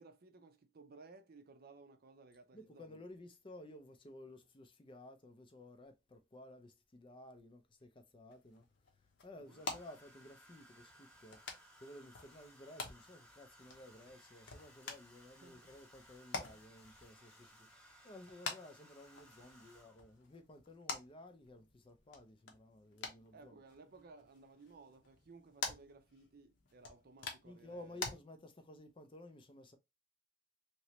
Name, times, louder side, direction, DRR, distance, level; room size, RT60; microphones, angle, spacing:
voice 1, 0.0-3.0 9.5-9.6 15.4-15.7 23.3-28.1, right 3 dB, 50° right, 0.5 m, -59 dB
voice 2, 2.5-8.7 9.2-11.4 11.8-23.5 27.4-29.8, left 1 dB, 25° left, 0.5 m, -55 dB
Domestic sounds home sounds, 7.5-8.0 9.4-20.2 21.4-21.7 22.0-22.3, equal, 5° left, 1.0 m, -63 dB
sound 1, 8.3-28.1, left 4 dB, 65° left, 0.9 m, -49 dB
3.0 x 2.9 x 2.9 m
head